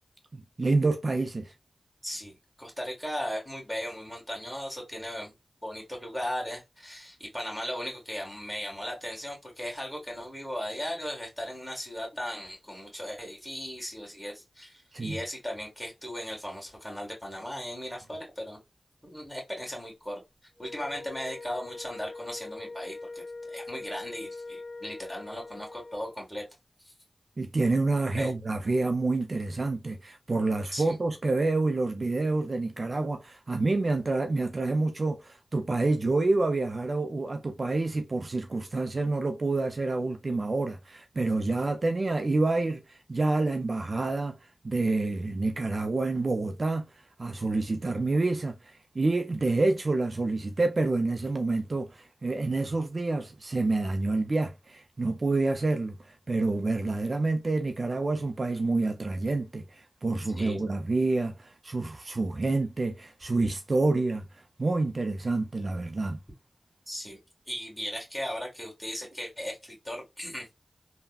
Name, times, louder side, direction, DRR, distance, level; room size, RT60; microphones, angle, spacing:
voice 1, 0.3-1.5 14.9-15.2 27.4-44.4 44.6-46.9 47.2-48.6 48.9-64.2 64.6-66.2, right 3 dB, 55° right, 0.4 m, -28 dB
voice 2, 2.0-5.3 5.6-18.6 19.0-20.2 20.6-26.5 26.8-26.9 28.2-28.3 30.7-30.9 60.4-60.6 66.9-67.2 67.5-70.6, equal, 10° left, 1.8 m, -37 dB
Wind instrument woodwind instrument, 20.6-26.2, left 3 dB, 30° left, 1.0 m, -42 dB
3.4 x 2.1 x 2.3 m
cardioid pair, 40°, 0 cm